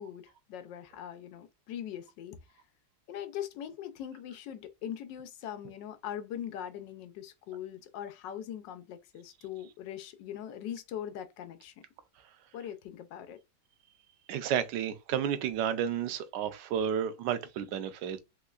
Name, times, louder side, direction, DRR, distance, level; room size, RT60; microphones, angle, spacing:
voice 1, 0.0-2.4 3.1-11.7 12.5-13.4, left 10 dB, 85° left, 1.3 m, -41 dB
voice 2, 14.3-18.2, right 9 dB, 80° right, 1.2 m, -31 dB
3.6 x 3.1 x 2.4 m
omnidirectional pair, 1.9 m